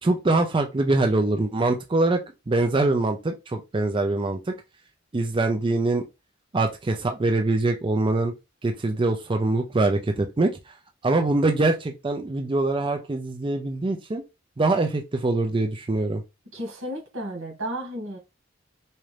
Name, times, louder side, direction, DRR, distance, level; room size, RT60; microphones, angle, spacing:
voice 1, 0.0-2.2 2.5-4.5 5.1-6.0 6.5-8.3 8.6-10.8 11.0-14.2 14.6-16.2, right 2 dB, 25° right, 0.4 m, -23 dB
voice 2, 16.5-18.2, right 1 dB, 85° right, 1.8 m, -33 dB
4.2 x 2.5 x 3.2 m
head